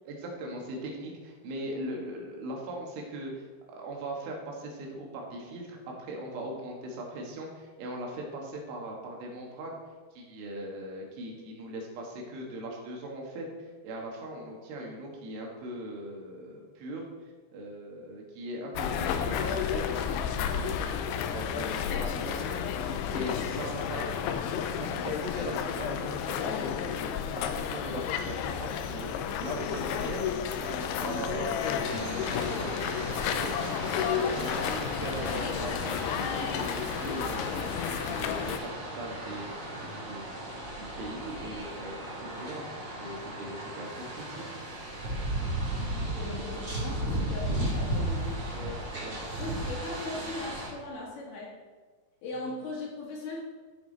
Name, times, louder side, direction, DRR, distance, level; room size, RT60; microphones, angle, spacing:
voice 1, 0.1-9.8 10.1-17.0 17.5-24.5 24.8-27.0 27.3-33.7 34.1-40.2 40.8-42.7 43.0-44.4 48.5-49.2, right 1 dB, 85° right, -1 dB, 4.1 m, -40 dB
sound 1, 18.7-38.6, left 8 dB, 85° left, 2.4 m, -32 dB
sound 2, 31.8-50.7, right 1 dB, 25° right, 1.9 m, -35 dB
voice 2, 46.1-48.5 49.4-51.6 52.2-53.4, left 2 dB, 60° left, -3 dB, 3.3 m, -38 dB
13.5 x 7.3 x 4.0 m, 1.4 s
omnidirectional pair, 5.4 m